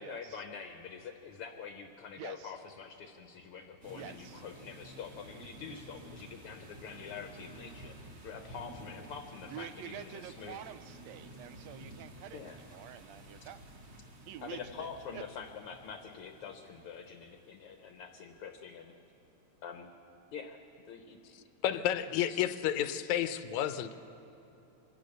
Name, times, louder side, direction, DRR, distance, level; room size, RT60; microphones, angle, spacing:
voice 1, 0.0-8.0 8.2-10.6 12.3-12.6 14.4-18.9 19.6-19.9 20.3-20.6 20.9-21.3 21.7-21.8 22.1-22.4, left 6 dB, 65° left, 6 dB, 1.5 m, -46 dB
voice 2, 2.2-2.5 3.9-4.4 9.5-13.6 14.3-15.2, right 10 dB, 75° right, 12 dB, 1.8 m, -47 dB
sound 1, 3.8-18.4, right 1 dB, 45° right, 3.6 m, -52 dB
voice 3, 21.6-24.0, left 11 dB, 80° left, 11 dB, 2.0 m, -31 dB
24.0 x 17.0 x 6.6 m, 2.9 s
omnidirectional pair, 3.4 m